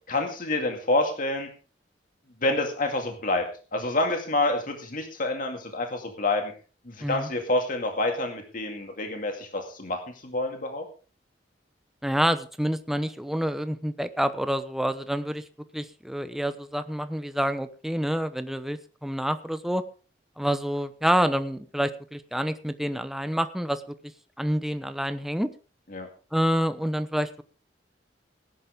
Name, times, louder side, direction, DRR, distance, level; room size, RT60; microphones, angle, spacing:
voice 1, 0.1-1.5 2.4-3.4 3.7-6.5 6.9-10.8 25.9-26.1, left 2 dB, 50° left, 4 dB, 2.3 m, -27 dB
voice 2, 12.0-15.4 15.7-19.8 20.4-23.8 24.4-25.5 26.3-27.4, equal, ahead, 10 dB, 0.9 m, -27 dB
18.5 x 11.0 x 3.6 m, 0.37 s
head